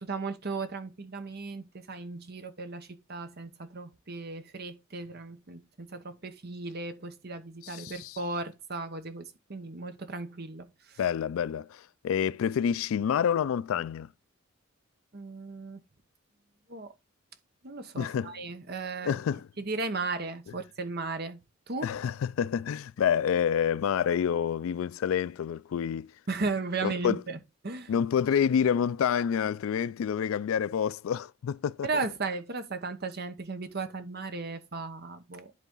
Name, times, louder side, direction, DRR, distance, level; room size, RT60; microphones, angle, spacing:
voice 1, 0.0-10.7 15.1-15.8 16.7-16.9 17.6-19.2 19.6-21.9 26.3-27.4 27.6-27.9 31.8-35.5, right 3 dB, 50° right, 1.0 m, -36 dB
voice 2, 7.6-8.2 11.0-14.1 18.0-18.3 19.0-19.5 21.8-26.1 26.8-27.2 27.9-31.9, left 8 dB, 70° left, 0.3 m, -28 dB
10.5 x 4.0 x 3.7 m
head